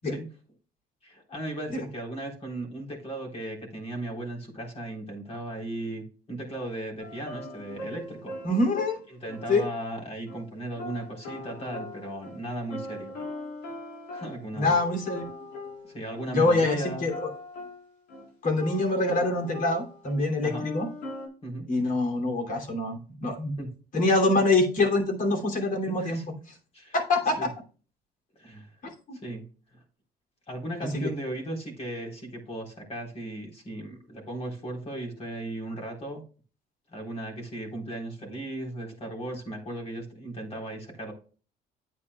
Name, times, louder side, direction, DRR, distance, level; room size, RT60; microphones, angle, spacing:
voice 1, 1.0-8.4 9.1-13.1 14.1-14.7 15.8-17.1 20.4-20.7 21.4-21.7 23.6-23.7 25.9-26.2 26.7-26.9 27.4-27.5 28.4-28.7 29.2-29.5 30.5-36.2 36.9-41.1, right 1 dB, 35° left, 0 dB, 3.9 m, -36 dB
sound 1, 7.0-9.5 10.3-10.5 10.8-16.3 16.7-17.8 18.1-18.3 18.6-20.2 20.5-21.3, left 2 dB, 85° left, 4.0 m, -40 dB
voice 2, 8.4-9.0 9.5-9.6 14.5-15.3 16.3-17.3 18.4-20.9 21.7-23.5 23.9-26.2 26.9-27.5 28.8-29.2 30.8-31.1, left 2 dB, 55° left, 4 dB, 2.8 m, -25 dB
10.0 x 8.4 x 2.3 m, 0.38 s
cardioid pair, 110°, 17 cm